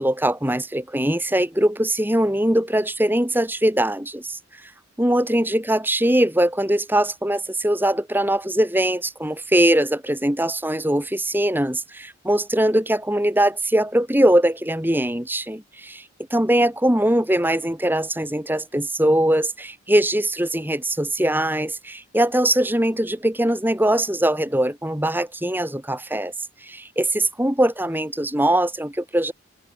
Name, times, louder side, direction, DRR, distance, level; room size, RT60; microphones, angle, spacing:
voice 1, 0.0-4.4 5.0-16.1 16.3-26.3 26.6-29.3, right 1 dB, 10° right, 3.4 m, -21 dB
open air
head